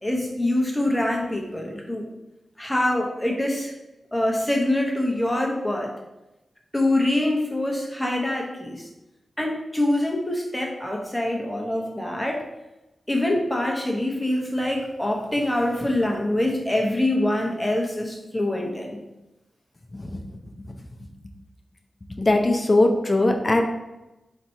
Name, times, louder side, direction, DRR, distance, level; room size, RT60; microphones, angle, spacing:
voice 1, 0.0-2.1 2.6-3.7 4.1-5.9 6.7-8.9 9.4-12.4 13.1-19.0, left 1 dB, 10° left, 0 dB, 1.0 m, -25 dB
voice 2, 22.1-23.6, left 2 dB, 35° left, 4 dB, 0.5 m, -20 dB
4.2 x 2.9 x 4.3 m, 0.98 s
cardioid pair, 65°, 0 cm